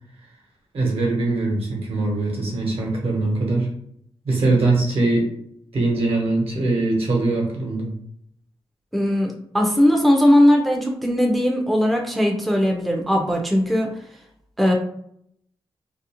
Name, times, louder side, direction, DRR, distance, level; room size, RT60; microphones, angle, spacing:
voice 1, 0.7-3.7 4.2-5.3 5.7-7.9, right 2 dB, 70° right, -2 dB, 0.9 m, -22 dB
voice 2, 8.9-13.9 14.6-14.7, equal, ahead, 1 dB, 0.4 m, -19 dB
2.5 x 2.0 x 2.8 m, 0.70 s
wide cardioid pair, 90°, 10 cm